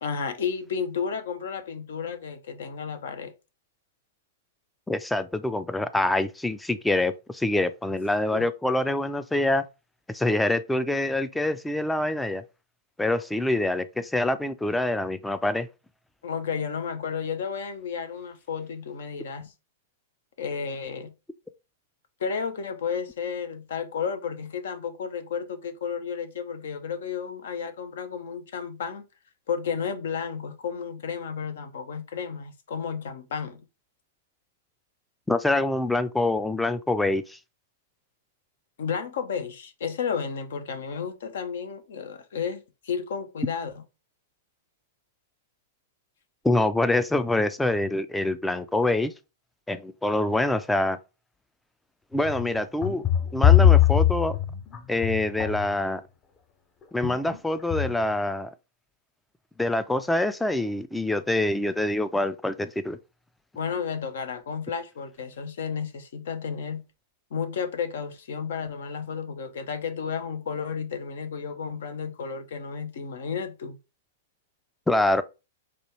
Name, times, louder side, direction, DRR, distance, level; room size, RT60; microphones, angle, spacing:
voice 1, 0.0-3.3 8.3-8.5 16.2-19.5 20.4-21.1 22.2-29.0 29.5-33.6 38.8-43.8 63.5-66.8 67.3-73.8, left 6 dB, 70° left, 0.7 m, -32 dB
voice 2, 4.9-9.6 10.1-12.4 13.0-15.7 35.3-37.4 46.4-49.1 49.7-51.0 52.1-53.0 53.3-54.4 54.9-56.0 56.9-58.5 59.6-63.0 74.9-75.2, left 2 dB, 5° left, 0.3 m, -25 dB
sound 1, 52.1-55.7 57.0-57.4 57.7-58.1, left 10 dB, 30° left, 0.7 m, -21 dB
4.2 x 2.3 x 3.0 m
hypercardioid pair, 110°, 0 cm